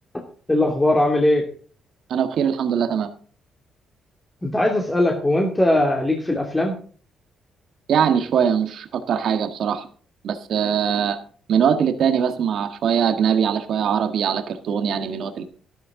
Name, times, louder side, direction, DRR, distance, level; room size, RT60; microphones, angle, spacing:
voice 1, 0.5-1.4 4.4-6.7, left 1 dB, 15° left, 0 dB, 2.7 m, -20 dB
voice 2, 2.1-3.1 7.9-9.9 10.2-11.2 11.5-15.4, right 8 dB, 65° right, 7 dB, 1.6 m, -21 dB
12.5 x 12.0 x 3.8 m, 0.44 s
cardioid pair, 90°, 0 cm